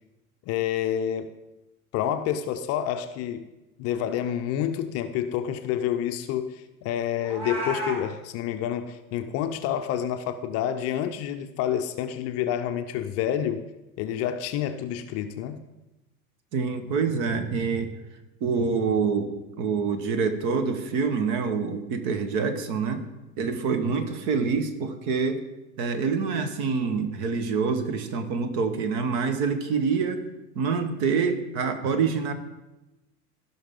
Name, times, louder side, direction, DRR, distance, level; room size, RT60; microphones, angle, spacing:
voice 1, 0.5-1.3 1.9-3.5 3.8-13.6 14.0-15.6, left 10 dB, 35° left, 8 dB, 0.6 m, -28 dB
Meow, 7.2-8.0, right 1 dB, 15° right, 2.6 m, -31 dB
voice 2, 16.5-17.9 18.4-19.3 19.6-23.1 23.4-25.4 25.8-30.2 30.5-32.3, right 5 dB, 45° right, 9 dB, 1.3 m, -26 dB
16.0 x 5.7 x 3.7 m, 1.0 s
figure-of-eight pair, 85°, 43 cm